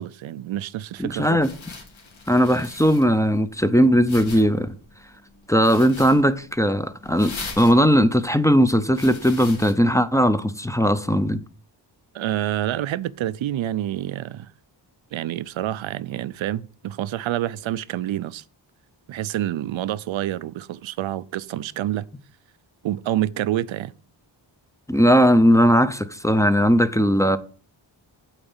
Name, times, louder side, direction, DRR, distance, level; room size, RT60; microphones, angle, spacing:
voice 1, 0.0-1.4 12.1-14.5 15.1-18.4 19.1-22.1 22.8-23.9, right 12 dB, 80° right, 0.6 m, -27 dB
sound 1, 1.0-9.7, left 4 dB, 90° left, 2.3 m, -41 dB
voice 2, 1.0-1.5 2.3-4.7 5.5-11.4 24.9-27.4, equal, 5° left, 0.5 m, -18 dB
8.9 x 4.0 x 7.1 m
wide cardioid pair, 115°, 46 cm